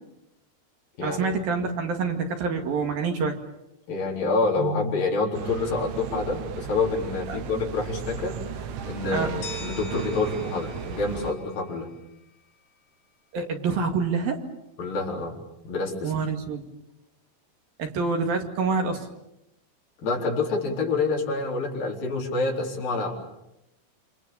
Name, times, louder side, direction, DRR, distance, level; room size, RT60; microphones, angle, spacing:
voice 1, 1.0-3.4 7.3-7.4 9.1-9.3 13.3-14.4 16.0-16.6 17.8-19.1, right 4 dB, 55° right, 3 dB, 3.7 m, -26 dB
voice 2, 3.9-11.9 14.8-15.3 15.6-16.1 20.0-23.1, left 3 dB, 50° left, -1 dB, 5.6 m, -27 dB
sound 1, 5.3-11.3, right 7 dB, 90° right, 3.8 m, -36 dB
sound 2, 7.5-11.4, right 4 dB, 25° right, 5.4 m, -43 dB
sound 3, 9.4-12.3, left 4 dB, 70° left, 5.8 m, -44 dB
29.0 x 26.5 x 7.1 m, 0.86 s
omnidirectional pair, 5.4 m